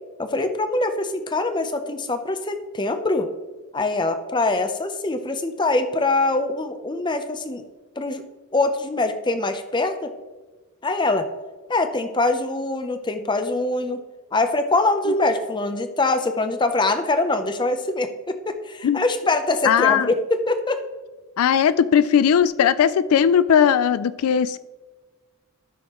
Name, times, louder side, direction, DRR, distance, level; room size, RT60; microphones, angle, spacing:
voice 1, 0.2-3.3 3.7-7.6 8.0-8.2 8.5-10.1 10.8-11.3 11.7-14.0 14.3-20.8, left 2 dB, 20° left, 8 dB, 0.6 m, -23 dB
voice 2, 19.7-20.1 21.4-24.6, left 8 dB, 85° left, 16 dB, 0.3 m, -18 dB
12.5 x 6.3 x 3.0 m, 1.3 s
head